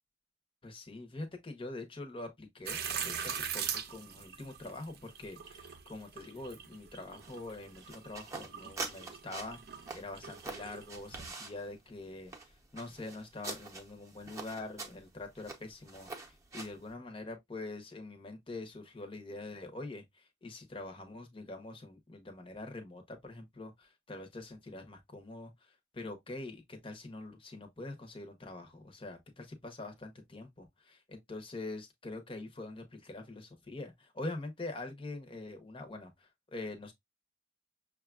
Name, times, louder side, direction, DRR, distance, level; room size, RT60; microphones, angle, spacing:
voice 1, 0.6-36.9, left 2 dB, 30° left, 0.9 m, -44 dB
sound 1, 2.7-11.3, right 7 dB, 60° right, 0.6 m, -42 dB
sound 2, 7.2-16.9, right 3 dB, 15° right, 0.8 m, -46 dB
6.3 x 2.3 x 2.3 m
head